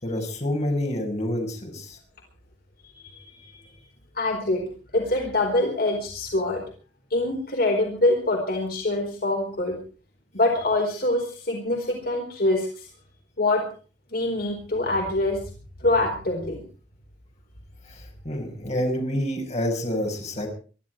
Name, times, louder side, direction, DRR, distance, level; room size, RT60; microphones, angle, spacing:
voice 1, 0.0-2.0 17.9-20.5, equal, 40° left, 2 dB, 5.8 m, -28 dB
voice 2, 4.1-4.6 4.9-6.6 7.1-9.8 10.3-12.9 13.4-13.7 14.1-15.4 15.8-16.6, left 2 dB, 60° left, 2 dB, 4.4 m, -24 dB
23.0 x 13.5 x 4.6 m, 0.39 s
head